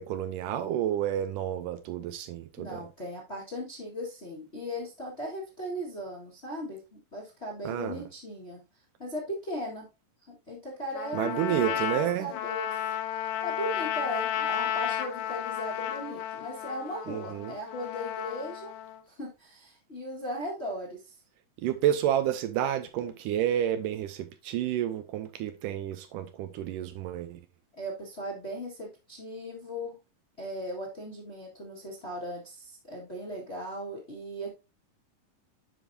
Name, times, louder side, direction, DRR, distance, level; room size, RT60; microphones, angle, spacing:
voice 1, 0.0-2.9 7.6-8.0 11.1-12.3 17.1-17.5 21.6-27.4, right 11 dB, 80° right, 2.1 m, -30 dB
voice 2, 2.6-8.6 9.0-9.9 10.3-12.8 13.4-18.8 19.1-21.1 27.7-29.9 30.4-34.6, equal, 30° left, 1.2 m, -38 dB
Trumpet, 10.9-19.0, left 10 dB, 85° left, 2.5 m, -33 dB
9.9 x 5.2 x 2.7 m
omnidirectional pair, 4.0 m